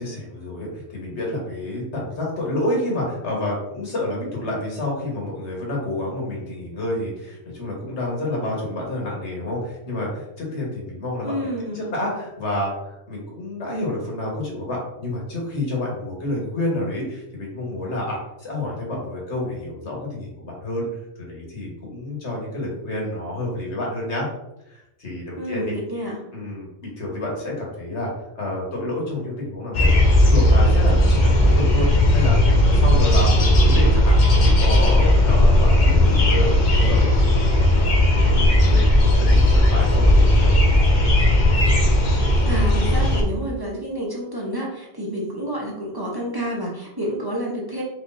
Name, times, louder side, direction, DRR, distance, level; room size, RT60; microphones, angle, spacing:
voice 1, 0.0-20.9 21.2-24.3 24.7-25.7 26.3-28.1 28.4-29.9 30.2-40.5, left 1 dB, 75° left, -3 dB, 1.7 m, -29 dB
voice 2, 11.2-11.9 25.4-26.2 42.2-47.8, equal, 20° right, -3 dB, 0.9 m, -29 dB
sound 1, 29.7-43.2, left 1 dB, 45° left, 0.9 m, -16 dB
4.4 x 4.0 x 2.7 m, 0.89 s
omnidirectional pair, 1.1 m